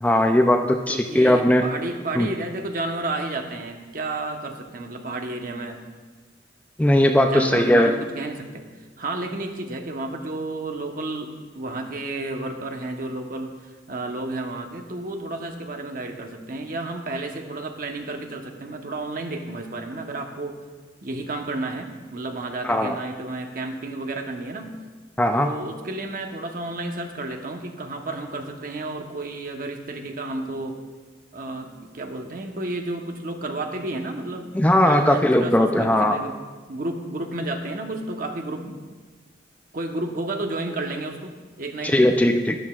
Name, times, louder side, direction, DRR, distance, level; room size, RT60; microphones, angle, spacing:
voice 1, 0.0-1.6 2.2-2.3 6.8-7.9 22.6-23.0 25.2-25.5 34.5-36.2 41.9-42.5, left 1 dB, 10° left, 4 dB, 0.4 m, -18 dB
voice 2, 0.9-5.8 7.2-8.7 9.0-20.6 21.0-24.8 25.4-30.8 31.3-34.5 34.8-36.4 36.7-38.8 39.7-42.3, right 2 dB, 50° right, 4 dB, 1.0 m, -31 dB
13.0 x 10.5 x 2.4 m, 1.4 s
head